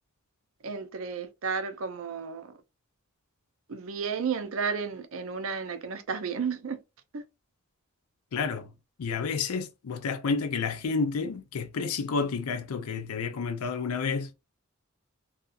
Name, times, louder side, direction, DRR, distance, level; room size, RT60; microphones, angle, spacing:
voice 1, 0.6-2.5 3.7-6.8 7.1-7.2, right 5 dB, 70° right, 0.5 m, -32 dB
voice 2, 8.3-8.7 9.0-14.3, left 5 dB, 90° left, 0.5 m, -30 dB
2.8 x 2.3 x 2.4 m
head